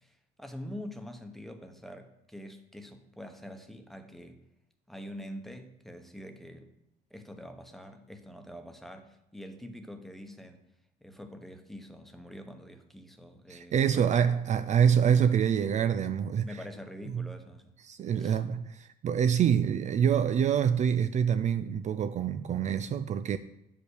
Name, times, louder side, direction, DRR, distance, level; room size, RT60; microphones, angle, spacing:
voice 1, 0.0-4.4 4.9-6.7 7.1-10.6 11.0-14.4 16.4-17.7 18.2-18.4, equal, ahead, 1.1 m, -45 dB
voice 2, 13.5-16.5 17.1-17.3 17.8-23.4, right 8 dB, 45° right, 0.4 m, -26 dB
8.6 x 5.5 x 6.4 m
cardioid pair, 110°, 17 cm